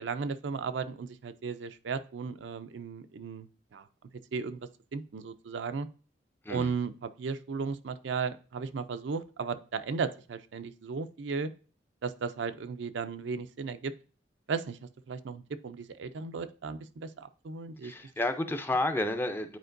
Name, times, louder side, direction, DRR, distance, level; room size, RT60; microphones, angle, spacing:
voice 1, 0.0-3.5 3.7-3.9 4.3-5.9 6.5-11.5 12.0-13.9 14.5-17.9, right 5 dB, 75° right, 10 dB, 0.4 m, -35 dB
voice 2, 17.8-19.6, left 2 dB, 10° left, 7 dB, 0.5 m, -31 dB
9.2 x 4.4 x 2.5 m, 0.37 s
head